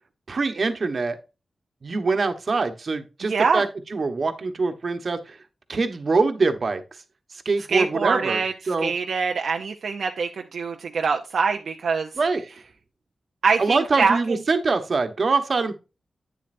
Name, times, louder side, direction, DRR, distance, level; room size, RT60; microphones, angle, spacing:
voice 1, 0.3-1.2 1.8-3.7 3.9-5.4 5.7-6.8 7.4-8.9 12.2-12.4 13.6-15.7, right 4 dB, 60° right, 8 dB, 1.1 m, -24 dB
voice 2, 3.3-3.6 7.7-12.1 13.4-14.2, right 5 dB, 85° right, 4 dB, 0.6 m, -24 dB
9.0 x 7.6 x 2.6 m, 0.30 s
cardioid pair, 55°, 0 cm